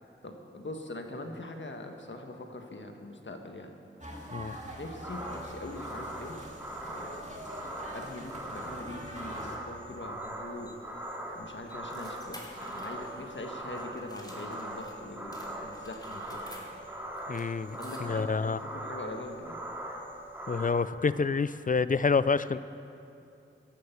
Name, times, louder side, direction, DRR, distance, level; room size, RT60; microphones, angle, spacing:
voice 1, 0.2-3.7 4.8-6.4 6.9-7.2 7.9-16.4 17.8-19.6, left 2 dB, 60° left, 4 dB, 1.4 m, -42 dB
sound 1, 4.0-9.6, equal, 35° right, 2.3 m, -45 dB
sound 2, 5.0-20.7, right 1 dB, 10° right, 2.3 m, -41 dB
sound 3, 10.2-15.0 15.3-18.4, left 1 dB, 20° left, 3.0 m, -52 dB
voice 2, 17.3-18.6 20.5-22.6, left 4 dB, 40° left, 15 dB, 0.4 m, -28 dB
13.0 x 11.5 x 7.0 m, 2.7 s
wide cardioid pair, 50°, 21 cm